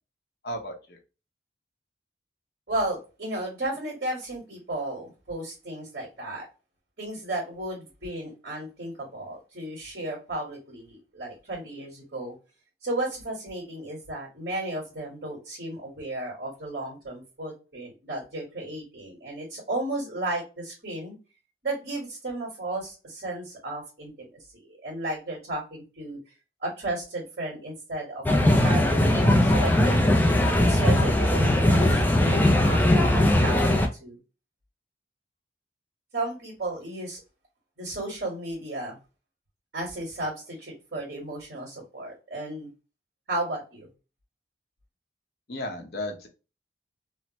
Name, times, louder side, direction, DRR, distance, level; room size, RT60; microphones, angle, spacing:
voice 1, 0.4-1.0 45.5-46.3, left 1 dB, 60° left, 3 dB, 0.8 m, -34 dB
voice 2, 2.7-6.5 7.0-12.3 12.8-21.1 21.6-24.3 24.5-26.3 26.6-30.0 30.6-34.2 36.1-37.2 37.8-39.0 39.7-42.7 43.3-43.9, right 2 dB, 60° right, -3 dB, 1.6 m, -34 dB
sound 1, 28.3-33.9, left 1 dB, 10° left, 0.3 m, -20 dB
3.1 x 2.0 x 2.8 m, 0.31 s
head